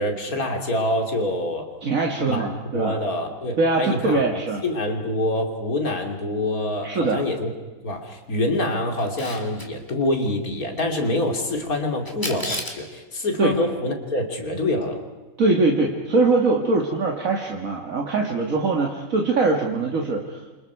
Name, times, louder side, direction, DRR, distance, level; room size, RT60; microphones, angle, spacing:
voice 1, 0.0-1.7 2.2-2.5 2.7-7.5 7.8-15.0, left 1 dB, 75° left, 3 dB, 3.3 m, -26 dB
voice 2, 1.8-3.0 3.6-4.6 6.8-7.2 13.4-13.5 15.4-20.6, right 3 dB, 65° right, 1 dB, 2.2 m, -22 dB
Camera, 9.0-9.7 12.1-12.9, left 1 dB, 15° left, 2.5 m, -31 dB
29.0 x 26.5 x 4.7 m, 1.2 s
omnidirectional pair, 1.5 m